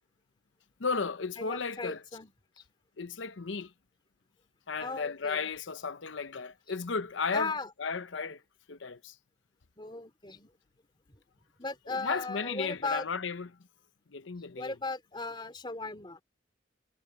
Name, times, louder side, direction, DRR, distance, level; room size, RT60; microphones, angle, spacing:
voice 1, 0.8-2.0 3.0-3.7 4.7-7.5 7.8-8.4 8.7-9.2 11.9-13.5 14.1-14.8, left 5 dB, 75° left, 0.8 m, -34 dB
voice 2, 1.4-2.3 2.6-2.7 4.8-5.5 7.3-7.7 9.8-10.5 11.6-13.1 14.6-16.2, left 3 dB, 25° left, 2.7 m, -37 dB
head